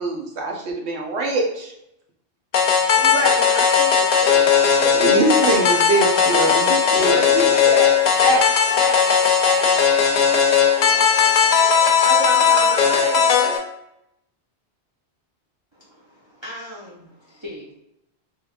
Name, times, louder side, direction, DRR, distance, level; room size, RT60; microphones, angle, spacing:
voice 1, 0.0-1.7 4.9-7.5, right 2 dB, 75° right, 0 dB, 1.1 m, -23 dB
sound 1, 2.5-13.6, left 6 dB, 55° left, 0.5 m, -17 dB
voice 2, 2.9-5.7 6.2-6.7 7.0-8.5 8.8-9.1 9.4-9.8 11.6-13.6, left 1 dB, 5° left, -5 dB, 0.9 m, -28 dB
voice 3, 15.7-17.7, left 1 dB, 30° right, -4 dB, 0.6 m, -39 dB
3.3 x 3.1 x 2.3 m, 0.82 s
omnidirectional pair, 1.1 m